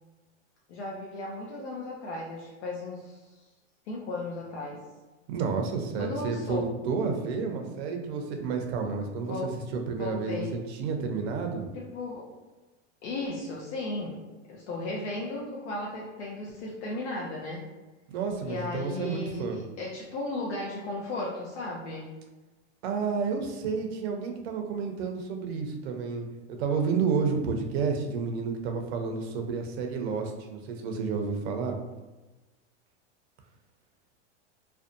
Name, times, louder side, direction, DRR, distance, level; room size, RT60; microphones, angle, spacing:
voice 1, 0.7-3.5 3.9-4.8 5.9-6.7 9.2-9.5 10.0-10.5 11.7-12.3 13.0-14.2 14.5-17.6 18.4-22.1, left 2 dB, 75° left, -3 dB, 0.6 m, -35 dB
voice 2, 5.3-10.4 10.8-11.7 18.1-19.6 22.8-31.8, right 5 dB, 65° right, 4 dB, 0.6 m, -30 dB
2.6 x 2.1 x 2.5 m, 1.2 s
hypercardioid pair, 120°, 35 cm